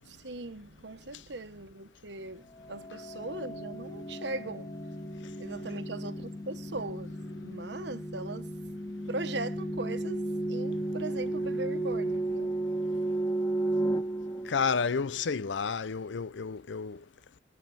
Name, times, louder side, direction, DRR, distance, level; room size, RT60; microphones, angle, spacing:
voice 1, 0.0-4.7 5.4-8.5 9.1-12.6, right 2 dB, 75° right, 1.2 m, -39 dB
sound 1, 2.5-15.2, right 1 dB, 20° left, 0.7 m, -34 dB
voice 2, 14.4-17.0, left 5 dB, 90° left, 0.6 m, -31 dB
22.0 x 8.3 x 4.2 m
head